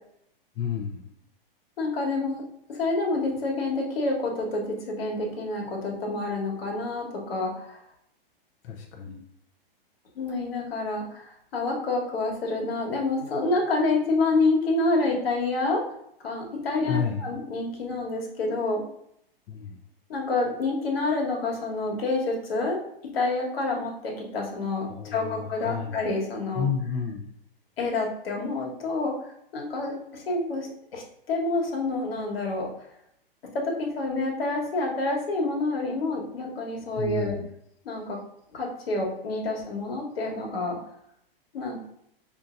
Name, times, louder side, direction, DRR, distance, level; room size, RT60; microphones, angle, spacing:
voice 1, 0.6-1.0 8.6-9.2 16.8-17.3 19.5-19.8 24.9-26.0 26.5-27.3 37.0-37.5, left 6 dB, 35° left, 0 dB, 0.5 m, -31 dB
voice 2, 1.8-2.4 2.7-7.8 10.1-15.8 16.2-18.8 20.1-22.8 23.1-26.7 27.8-32.7 33.5-37.4 37.8-38.2 38.5-40.8 41.5-41.8, left 2 dB, 80° left, 0 dB, 1.3 m, -28 dB
5.6 x 2.6 x 2.5 m, 0.72 s
hypercardioid pair, 140°, 29 cm